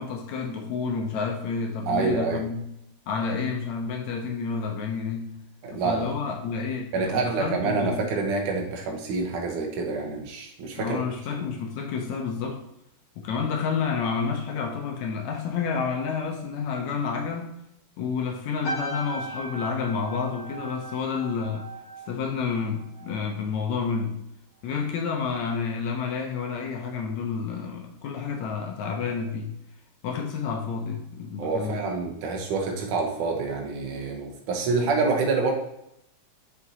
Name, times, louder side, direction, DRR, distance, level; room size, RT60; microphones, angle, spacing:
voice 1, 0.0-2.7 3.1-5.4 5.7-8.1 10.8-12.6 13.2-17.6 18.0-21.7 22.1-24.2 24.6-29.5 30.0-31.9 34.7-35.0, left 5 dB, 75° left, 3 dB, 1.9 m, -30 dB
voice 2, 1.9-2.4 5.6-6.1 6.9-11.0 31.4-35.5, right 4 dB, 80° right, 1 dB, 2.6 m, -27 dB
sound 1, 18.6-23.3 23.5-23.9, right 1 dB, 55° left, 2.2 m, -38 dB
6.7 x 5.7 x 2.8 m, 0.80 s
omnidirectional pair, 3.6 m